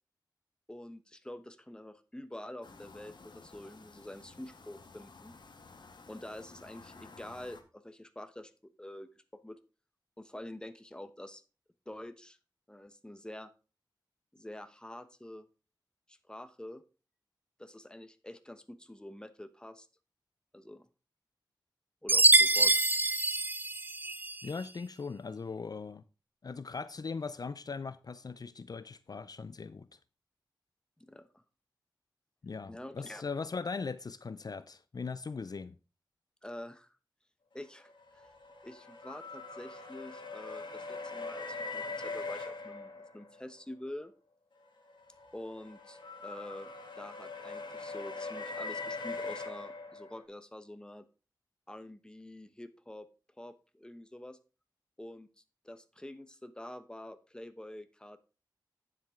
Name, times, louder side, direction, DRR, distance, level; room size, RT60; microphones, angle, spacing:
voice 1, 0.7-5.4 6.1-9.6 10.2-11.4 11.9-12.4 12.7-13.5 14.3-15.5 16.1-16.8 17.6-19.9 20.5-20.9 22.0-22.9 31.0-31.4 32.7-33.2 36.4-37.0 37.5-38.3 38.6-44.1 45.3-51.1 51.7-53.1 53.4-54.4 55.0-55.3 55.6-58.2, left 1 dB, 10° left, 1.0 m, -47 dB
sound 1, 2.6-7.6, left 4 dB, 75° left, 1.3 m, -54 dB
Chime, 22.1-24.4, right 2 dB, 25° right, 0.3 m, -25 dB
voice 2, 24.4-26.0 26.4-30.0 32.4-35.7, left 4 dB, 55° left, 0.4 m, -39 dB
sound 2, 37.9-43.5 44.9-50.2, left 3 dB, 90° left, 2.1 m, -42 dB
9.6 x 7.5 x 3.6 m
wide cardioid pair, 70°, 8 cm